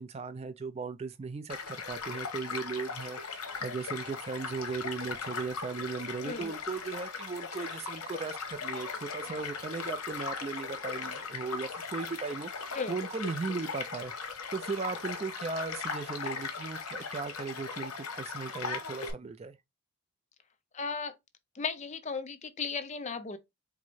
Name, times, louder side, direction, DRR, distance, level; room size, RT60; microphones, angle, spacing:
voice 1, 0.0-14.1 14.5-19.6, right 4 dB, 30° right, 0.3 m, -37 dB
Child speech kid speaking / Stream / Car passing by, 1.5-19.1, left 5 dB, 85° left, 1.1 m, -38 dB
voice 2, 20.7-21.1 21.5-23.4, left 5 dB, 30° left, 0.5 m, -35 dB
4.6 x 2.0 x 4.1 m
head